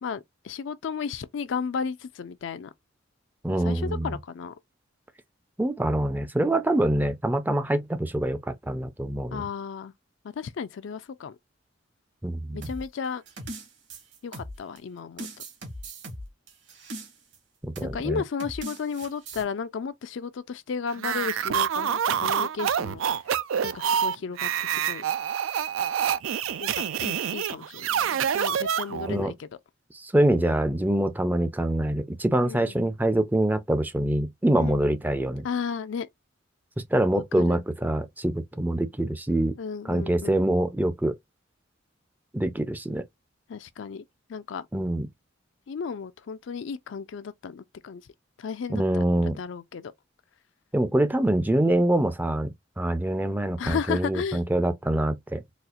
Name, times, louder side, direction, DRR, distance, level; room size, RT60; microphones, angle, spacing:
voice 1, 0.0-2.7 3.5-4.5 9.3-9.9 10.2-11.4 12.5-13.2 14.2-15.3 17.8-23.0 23.6-25.1 26.6-29.5 32.4-32.7 34.6-34.8 35.4-36.1 37.1-37.6 39.6-40.4 43.5-44.0 44.3-44.7 45.7-48.0 48.4-49.0 49.3-49.9 53.6-54.4, left 6 dB, 65° left, 0.4 m, -34 dB
voice 2, 3.4-4.1 5.6-9.4 12.2-12.7 17.6-18.2 29.1-29.3 29.9-35.4 36.9-39.5 39.9-41.1 42.3-43.0 44.7-45.1 48.7-49.4 50.7-55.4, right 1 dB, 10° right, 0.4 m, -25 dB
sound 1, 12.6-14.8 15.2-17.4 17.8-18.0 18.4-19.4, right 1 dB, 65° right, 1.5 m, -39 dB
sound 2, 21.0-29.2, right 8 dB, 90° right, 0.4 m, -27 dB
4.1 x 2.4 x 2.4 m
head